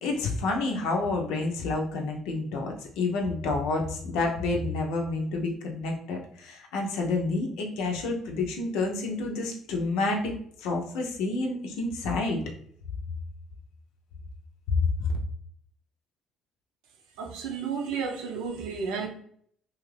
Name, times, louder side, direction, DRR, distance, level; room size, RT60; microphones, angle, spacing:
voice 1, 0.0-12.4 15.0-15.1, left 3 dB, 85° left, 0.6 m, -29 dB
voice 2, 17.2-19.1, right 5 dB, 90° right, 0.6 m, -32 dB
2.8 x 2.5 x 3.2 m
cardioid pair, 105°, 0 cm